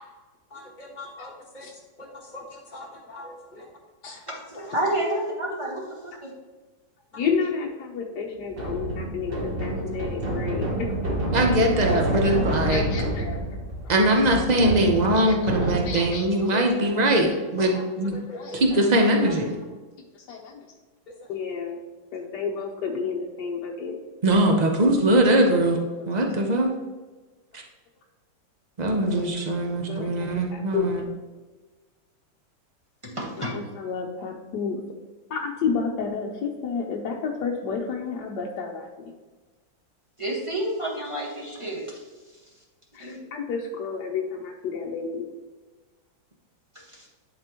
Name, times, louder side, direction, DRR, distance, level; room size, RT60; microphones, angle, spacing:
voice 1, 0.5-1.7 2.0-3.6 4.5-4.6 11.9-12.0 12.2-12.3 15.8-16.1 16.5-16.9 17.6-17.8 18.1-18.8 19.1-19.3, left 1 dB, 25° left, -2 dB, 1.3 m, -40 dB
voice 2, 4.3-6.3 33.0-33.5 40.2-42.0 43.0-43.2 46.7-47.1, right 1 dB, 20° right, -2 dB, 1.2 m, -30 dB
voice 3, 7.1-10.9 12.7-13.4 13.8-14.2 15.3-15.4 15.7-16.5 17.0-17.2 18.2-18.6 19.0-19.1 20.3-20.5 21.3-21.8 22.1-24.0 25.7-25.8 29.0-29.6 29.9-30.9 33.4-34.8 35.3-39.1 42.9-45.3, left 5 dB, 70° left, 0 dB, 1.2 m, -31 dB
sound 1, 8.5-16.3, right 1 dB, 40° right, 1.0 m, -28 dB
voice 4, 11.3-12.8 13.9-18.2 18.5-19.6 24.2-25.8 26.1-26.7 27.5-27.6 28.8-31.0, right 1 dB, 75° right, 2 dB, 0.4 m, -21 dB
11.0 x 4.3 x 2.9 m, 1.3 s
omnidirectional pair, 2.0 m